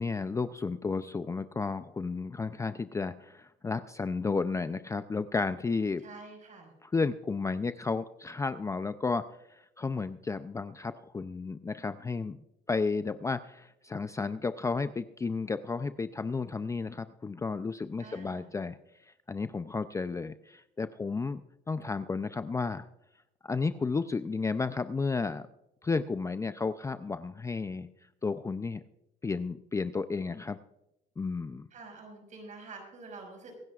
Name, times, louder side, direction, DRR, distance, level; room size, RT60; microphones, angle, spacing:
voice 1, 0.0-6.0 6.8-9.2 9.5-12.4 12.7-18.8 19.3-22.9 23.4-25.4 25.8-27.9 28.2-28.8 29.2-30.6 31.2-31.7, left 4 dB, 20° left, 11 dB, 0.4 m, -32 dB
voice 2, 6.0-6.7 18.0-18.5 31.7-33.5, right 3 dB, 45° right, 2 dB, 5.6 m, -47 dB
24.0 x 10.5 x 2.4 m, 0.86 s
cardioid pair, 110°, 17 cm